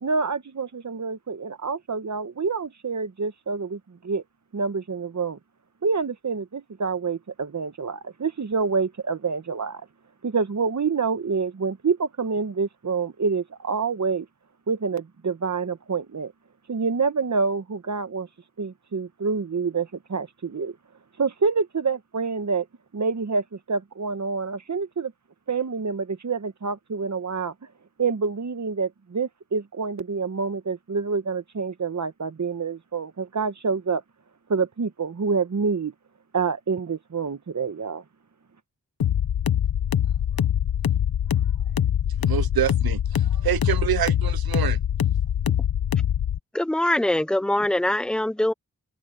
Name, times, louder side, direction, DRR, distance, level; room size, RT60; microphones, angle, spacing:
voice 1, 0.0-4.2 4.5-5.4 5.8-9.8 10.2-14.2 14.7-16.3 16.7-18.3 18.6-20.8 21.2-22.6 22.9-25.1 25.5-27.5 28.0-34.0 34.5-35.9 36.3-38.0, right 5 dB, 50° right, 1.4 m, -27 dB
sound 1, 39.0-46.4, left 10 dB, 80° left, 0.9 m, -23 dB
voice 2, 42.2-44.8, right 11 dB, 85° right, 0.6 m, -26 dB
voice 3, 46.5-48.5, left 1 dB, ahead, 0.7 m, -23 dB
wide cardioid pair, 65°, 36 cm